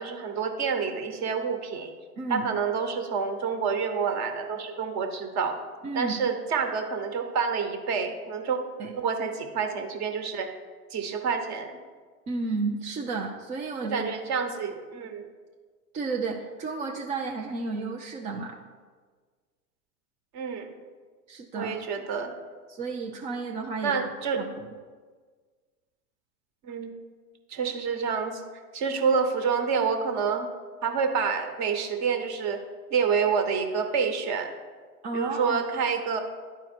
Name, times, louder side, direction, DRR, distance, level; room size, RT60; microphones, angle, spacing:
voice 1, 0.0-1.9 2.3-5.6 5.9-8.6 9.0-10.5 10.9-11.7 13.8-15.2 20.3-20.7 21.5-22.3 23.8-24.4 26.6-26.9 27.5-28.4 28.7-30.5 30.8-32.6 32.9-34.5 35.1-36.2, right 6 dB, 35° right, 6 dB, 1.1 m, -28 dB
voice 2, 2.2-2.5 5.8-6.2 8.8-8.9 12.3-14.0 15.9-18.6 21.3-21.8 22.7-23.9 24.3-24.7 35.0-35.6, right 3 dB, 15° right, 0 dB, 0.4 m, -32 dB
11.0 x 4.5 x 4.4 m, 1.5 s
hypercardioid pair, 105°, 46 cm